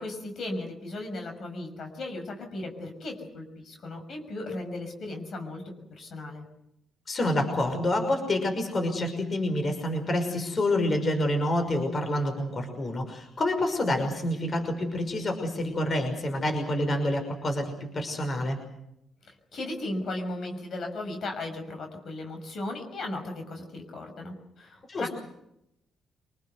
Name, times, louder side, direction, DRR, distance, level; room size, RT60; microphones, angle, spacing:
voice 1, 0.0-6.4 19.3-25.1, left 2 dB, 55° left, 4 dB, 6.3 m, -36 dB
voice 2, 7.1-18.6 24.9-25.1, left 1 dB, 40° left, 6 dB, 5.9 m, -28 dB
26.0 x 20.0 x 8.1 m, 0.81 s
cardioid pair, 90°, 0 cm